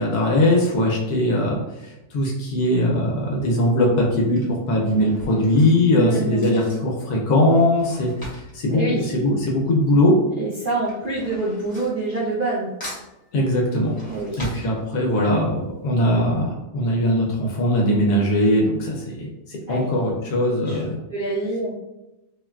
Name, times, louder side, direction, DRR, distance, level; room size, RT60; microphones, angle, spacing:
voice 1, 0.0-8.1 8.5-10.2 13.3-13.9 14.4-21.0, left 1 dB, 75° left, -1 dB, 1.1 m, -20 dB
Drawer open or close / Cutlery silverware, 2.9-3.2 4.0-9.9 10.2-12.5 12.8-15.3 15.7-15.8 16.1-16.2, equal, 20° left, 0.6 m, -41 dB
voice 2, 5.9-6.5 8.7-9.1 10.4-12.7 14.1-14.4 19.7-19.9 20.6-21.7, right 2 dB, 80° right, -8 dB, 0.4 m, -26 dB
3.5 x 2.2 x 2.2 m, 0.94 s
omnidirectional pair, 1.7 m